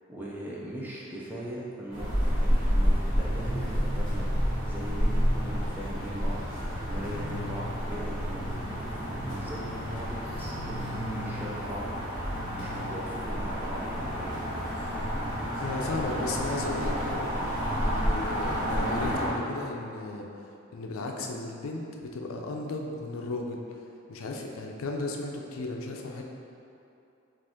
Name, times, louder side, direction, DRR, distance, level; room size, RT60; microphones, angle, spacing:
voice 1, 0.1-4.3 4.6-6.4 6.9-14.4 15.8-16.0, right 1 dB, 10° right, -5 dB, 0.5 m, -40 dB
sound 1, 1.9-19.3, equal, 25° right, 1.5 m, -30 dB
voice 2, 15.6-20.3 20.7-23.8 24.1-26.2, left 2 dB, 90° left, 1 dB, 0.4 m, -35 dB
5.1 x 2.5 x 3.5 m, 2.8 s
head